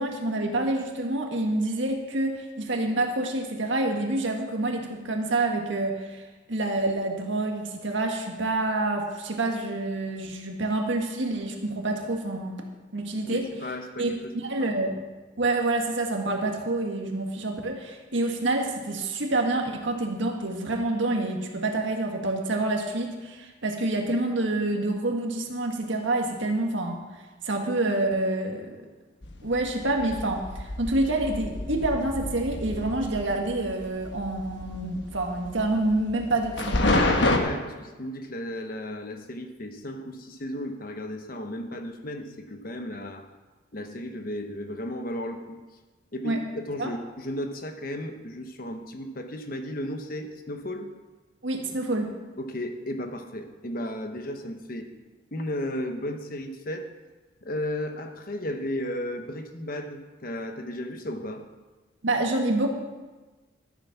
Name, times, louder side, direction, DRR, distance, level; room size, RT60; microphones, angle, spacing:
voice 1, 0.0-6.2 6.5-12.6 12.9-13.4 14.0-14.9 15.4-27.0 27.4-28.9 29.4-37.0 46.2-46.4 46.8-46.9 51.4-52.1 62.0-62.7, right 2 dB, 75° right, 2 dB, 1.7 m, -27 dB
voice 2, 13.3-14.7 15.0-15.1 37.3-43.3 43.7-45.6 46.1-46.4 46.7-50.9 52.4-54.9 55.3-56.9 57.4-61.5, left 1 dB, 45° left, 6 dB, 1.1 m, -34 dB
sound 1, 29.2-37.4, left 2 dB, 65° left, 1.2 m, -29 dB
13.0 x 7.6 x 5.9 m, 1.3 s
head